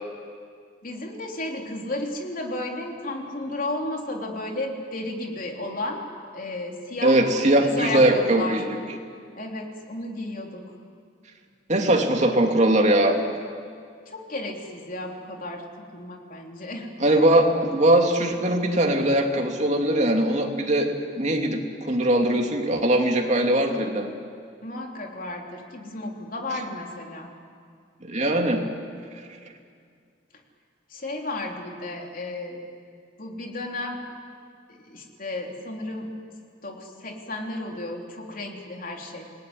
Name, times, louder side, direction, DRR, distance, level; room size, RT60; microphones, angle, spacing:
voice 1, 0.8-6.0 6.3-7.2 7.5-8.6 9.4-10.6 14.1-15.6 15.9-16.9 24.6-27.3 30.9-32.6 33.2-34.0 34.7-36.1 36.6-39.2, left 2 dB, 50° left, 1 dB, 3.5 m, -33 dB
voice 2, 7.0-8.8 11.7-13.2 17.0-24.1 28.1-28.6, right 1 dB, 40° right, 2 dB, 2.6 m, -21 dB
27.5 x 19.5 x 9.8 m, 2.2 s
head